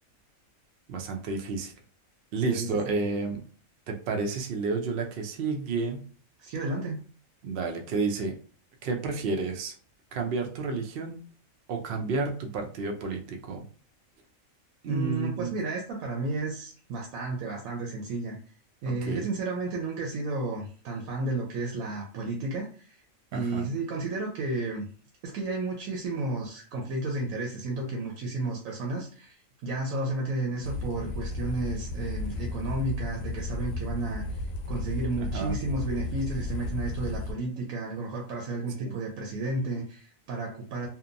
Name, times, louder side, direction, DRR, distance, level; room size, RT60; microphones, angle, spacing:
voice 1, 0.9-1.7 2.3-3.4 3.9-6.0 7.4-8.3 8.8-9.7 10.1-11.2 11.7-13.6 14.8-15.6 18.9-19.3 23.3-23.7 35.3-35.5 38.8-39.0, right 4 dB, 60° right, 3 dB, 0.6 m, -30 dB
voice 2, 2.4-3.0 6.4-7.0 14.9-18.4 18.8-23.0 23.3-24.9 25.2-29.4 29.6-34.4 34.7-40.9, right 2 dB, 85° right, 0 dB, 1.0 m, -32 dB
sound 1, 30.6-37.3, left 2 dB, 80° left, 1.0 m, -34 dB
2.8 x 2.1 x 2.5 m, 0.41 s
omnidirectional pair, 1.4 m